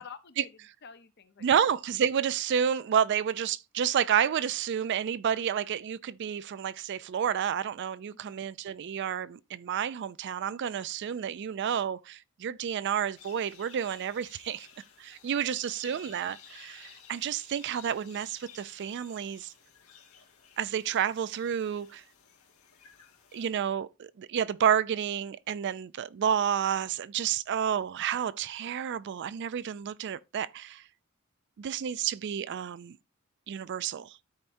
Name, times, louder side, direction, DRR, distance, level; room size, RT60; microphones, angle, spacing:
voice 1, 0.0-1.5 8.1-8.4 15.5-16.2, left 6 dB, 50° left, 0.8 m, -50 dB
voice 2, 1.4-14.7 15.0-19.5 20.6-22.0 23.3-30.8 31.6-33.0 33.5-34.2, right 8 dB, 50° right, 0.3 m, -30 dB
sound 1, 13.1-23.5, left 7 dB, 75° left, 2.2 m, -55 dB
13.0 x 4.4 x 2.6 m
head